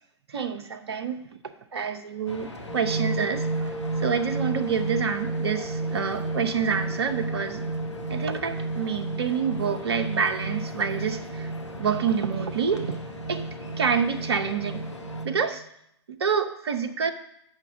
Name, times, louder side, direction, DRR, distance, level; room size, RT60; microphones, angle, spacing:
voice 1, 0.3-1.3 1.7-7.6 8.1-11.5 11.8-13.0 13.3-13.5 13.8-14.8 15.2-15.6 16.1-17.1, right 6 dB, 65° right, 8 dB, 0.7 m, -27 dB
sound 1, 2.3-15.3, left 2 dB, 85° left, 1.1 m, -41 dB
sound 2, 2.7-15.5, right 3 dB, 30° left, 3.7 m, -32 dB
7.6 x 5.8 x 6.0 m, 0.75 s
figure-of-eight pair, 110°, 15 cm